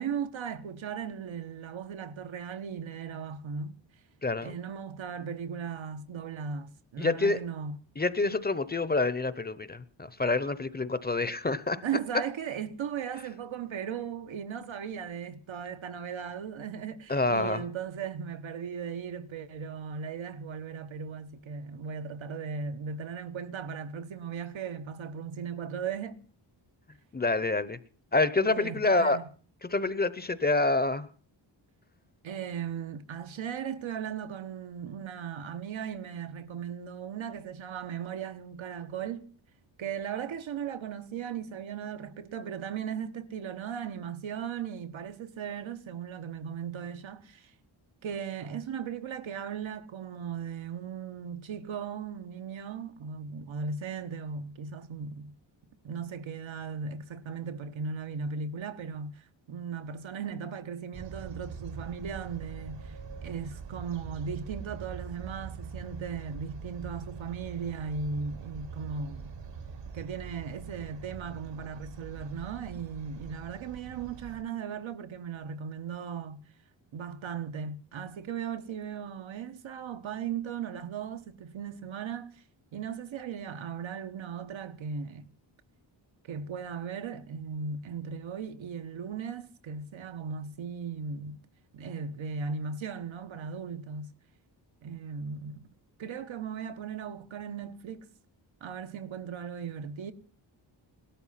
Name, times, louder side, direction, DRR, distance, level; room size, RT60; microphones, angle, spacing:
voice 1, 0.0-3.8 4.4-7.8 11.8-26.2 28.5-29.2 32.2-39.3 39.8-47.5 48.0-55.4 55.8-69.3 69.9-76.4 76.9-82.4 82.7-85.3 86.2-91.4 91.7-94.1 94.8-95.7 96.0-98.1 98.6-100.1, right 6 dB, 80° right, 1.3 m, -37 dB
voice 2, 4.2-4.5 7.0-7.4 8.0-11.8 17.1-17.6 27.1-27.8 28.1-29.2 29.6-31.1, left 3 dB, 20° left, 0.7 m, -27 dB
sound 1, 60.9-74.4, right 5 dB, 65° right, 1.5 m, -43 dB
17.5 x 13.0 x 5.7 m
wide cardioid pair, 130°, 46 cm